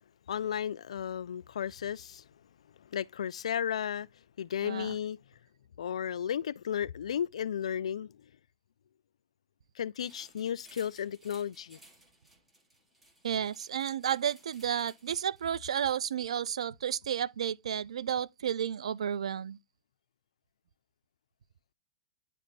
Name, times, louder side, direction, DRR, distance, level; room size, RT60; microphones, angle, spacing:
voice 1, 0.3-2.2 2.9-4.1 4.4-5.2 5.8-8.1 9.8-11.8, left 9 dB, 90° left, 0.3 m, -34 dB
voice 2, 4.6-5.0 13.2-19.6, right 9 dB, 90° right, 0.5 m, -32 dB
Metallic Rattle Prolonged, 10.0-15.6, right 1 dB, 5° right, 2.0 m, -59 dB
10.0 x 3.3 x 4.1 m
hypercardioid pair, 145°, 3 cm